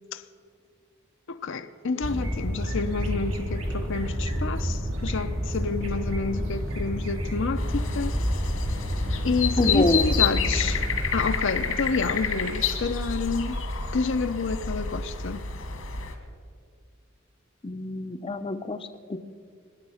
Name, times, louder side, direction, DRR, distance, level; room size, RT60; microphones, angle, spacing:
voice 1, 1.3-8.2 9.2-10.8 11.1-13.6 13.9-15.5, left 4 dB, 65° left, 0.6 m, -29 dB
sound 1, 2.0-11.0, equal, 80° right, 2.8 m, -29 dB
sound 2, 7.6-16.1, left 5 dB, 85° left, 2.0 m, -29 dB
voice 2, 9.6-10.0 17.6-18.8 19.1-19.2, left 2 dB, 25° left, 0.6 m, -26 dB
24.0 x 10.5 x 5.7 m
head